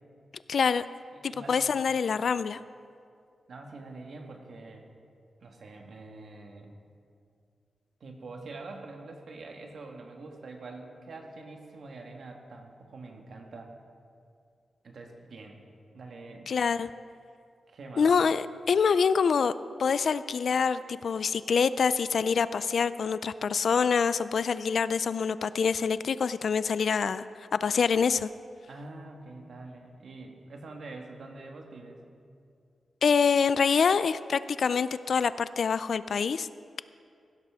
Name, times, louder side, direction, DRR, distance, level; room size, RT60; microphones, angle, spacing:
voice 1, 0.5-0.8 1.2-2.6 16.5-16.9 18.0-19.5 19.8-27.2 27.5-28.3 33.0-36.5, left 6 dB, 65° left, 15 dB, 0.3 m, -25 dB
voice 2, 1.1-1.9 3.5-4.9 5.4-6.7 8.0-13.7 14.8-15.7 15.9-16.5 17.7-18.1 28.7-32.0, right 3 dB, 65° right, 2 dB, 1.5 m, -45 dB
16.0 x 12.0 x 3.5 m, 2.3 s
wide cardioid pair, 100°, 0 cm